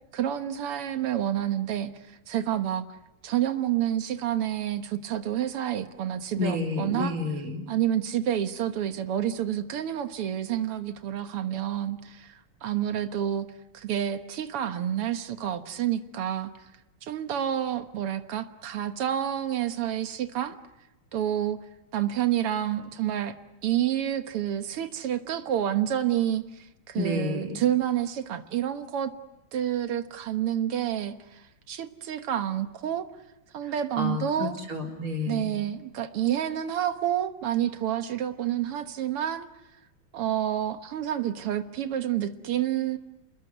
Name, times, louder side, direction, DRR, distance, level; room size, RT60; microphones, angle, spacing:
voice 1, 0.1-1.9 2.3-2.9 3.2-7.1 7.7-13.5 13.7-16.5 17.0-20.6 21.1-21.6 21.9-23.3 23.6-29.1 29.5-33.1 33.5-34.6 35.3-39.5 40.1-43.0, right 10 dB, 90° right, 9 dB, 2.3 m, -29 dB
voice 2, 6.4-7.6 26.9-27.6 33.6-35.5, left 3 dB, 70° right, 2 dB, 4.8 m, -30 dB
29.0 x 20.5 x 9.3 m, 0.99 s
omnidirectional pair, 2.4 m